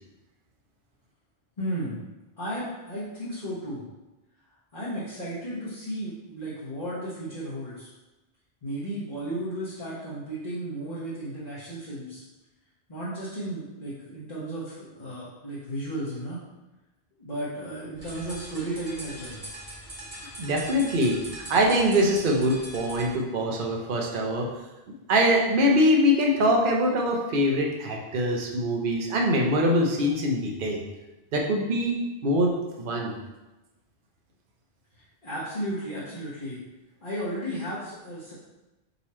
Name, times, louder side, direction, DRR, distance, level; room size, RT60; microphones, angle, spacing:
voice 1, 1.6-2.0 2.4-3.8 4.7-7.9 8.6-12.2 12.9-16.4 17.2-19.4 34.9-36.6 37.0-38.3, right 1 dB, 40° left, -10 dB, 1.2 m, -34 dB
sound 1, 17.9-23.1, right 1 dB, 30° right, 1.0 m, -41 dB
voice 2, 20.4-24.5 25.1-30.8 31.3-32.5 32.8-33.1, equal, 55° right, 0 dB, 0.9 m, -23 dB
4.0 x 2.9 x 4.2 m, 1.1 s
omnidirectional pair, 1.1 m